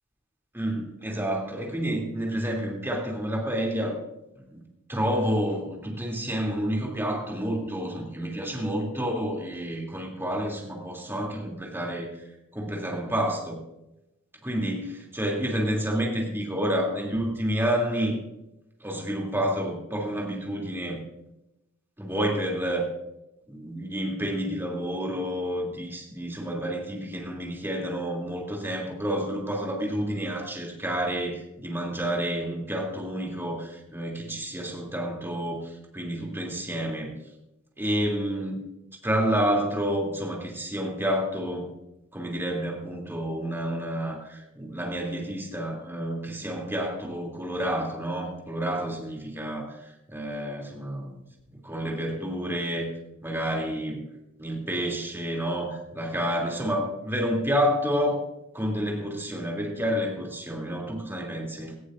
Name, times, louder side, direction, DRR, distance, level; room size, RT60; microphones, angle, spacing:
voice 1, 0.5-4.0 4.4-4.6 4.9-12.1 12.5-13.6 14.4-18.2 18.8-21.0 22.0-22.9 23.5-37.1 37.8-38.6 39.0-41.7 42.1-51.3 51.5-52.9 53.2-54.0 54.4-58.2 58.5-61.7, equal, 10° right, -1 dB, 2.9 m, -29 dB
18.0 x 14.0 x 2.6 m, 0.90 s
head